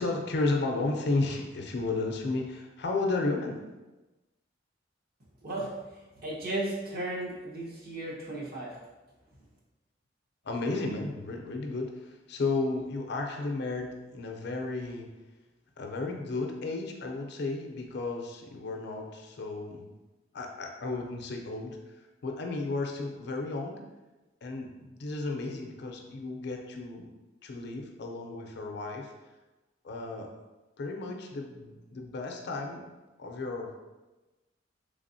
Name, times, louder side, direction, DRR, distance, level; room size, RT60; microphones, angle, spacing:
voice 1, 0.0-3.6 10.4-15.1 15.8-19.9 20.3-21.8 22.2-23.9 24.4-27.1 27.4-29.1 29.8-30.3 30.8-32.9 33.2-33.8, left 3 dB, 60° left, 2 dB, 0.5 m, -33 dB
voice 2, 5.4-8.8, right 1 dB, 55° right, -5 dB, 1.1 m, -35 dB
3.6 x 3.4 x 2.6 m, 1.1 s
head